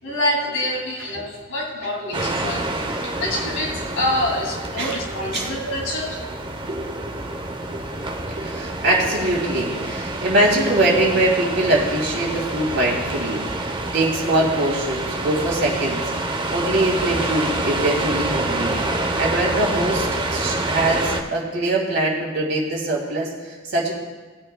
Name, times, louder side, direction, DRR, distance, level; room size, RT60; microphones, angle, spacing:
voice 1, 0.0-2.6 3.0-6.2, left 1 dB, 60° left, -1 dB, 2.5 m, -26 dB
sound 1, 2.1-21.2, right 2 dB, 25° right, 0.8 m, -27 dB
voice 2, 6.7-7.4 7.7-7.8 8.3-23.9, right 1 dB, 55° right, -3 dB, 2.8 m, -23 dB
20.0 x 8.8 x 2.2 m, 1.4 s
head